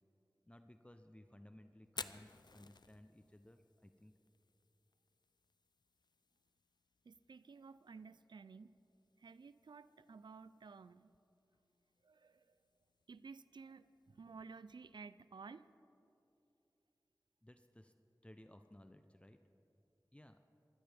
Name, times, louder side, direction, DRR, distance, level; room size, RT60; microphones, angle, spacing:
voice 1, 0.5-4.1 17.4-17.9 18.2-19.4 20.1-20.4, left 1 dB, 15° left, 7 dB, 0.6 m, -59 dB
Fire, 1.8-15.7, left 4 dB, 75° left, 0.5 m, -58 dB
voice 2, 7.0-8.7 9.2-11.1 12.0-12.6 13.1-15.7, right 5 dB, 90° right, 15 dB, 0.4 m, -54 dB
22.5 x 16.5 x 3.4 m, 2.9 s
wide cardioid pair, 45°, 7 cm